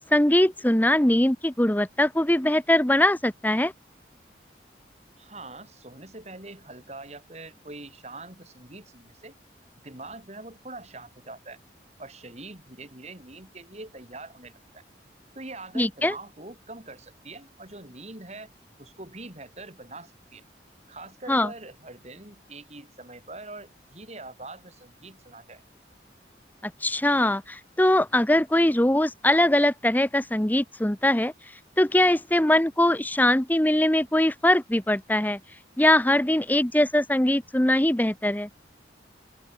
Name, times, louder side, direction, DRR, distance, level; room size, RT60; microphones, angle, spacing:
voice 1, 0.1-3.7 15.8-16.1 21.3-21.5 26.6-31.3 31.8-35.4 35.8-38.5, left 1 dB, 10° left, 0.8 m, -22 dB
voice 2, 5.2-9.4 9.8-11.6 12.0-14.8 15.3-18.5 18.8-20.4 20.9-25.6, right 2 dB, 35° right, 4.6 m, -43 dB
open air
head